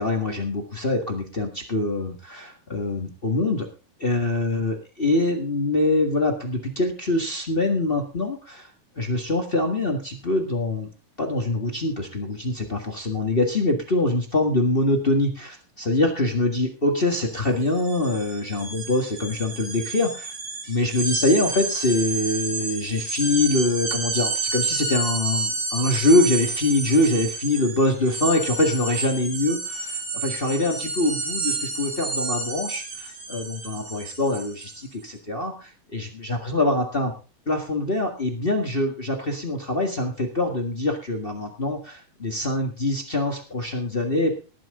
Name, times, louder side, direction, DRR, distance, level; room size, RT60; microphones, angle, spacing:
voice 1, 0.0-3.7 4.0-8.7 9.0-10.9 11.2-20.3 20.7-37.1 37.5-44.3, left 2 dB, 55° left, 2 dB, 0.6 m, -24 dB
sound 1, 17.1-17.3 17.6-34.8, right 3 dB, 70° right, 5.8 m, -30 dB
19.5 x 9.2 x 3.7 m, 0.33 s
omnidirectional pair, 4.2 m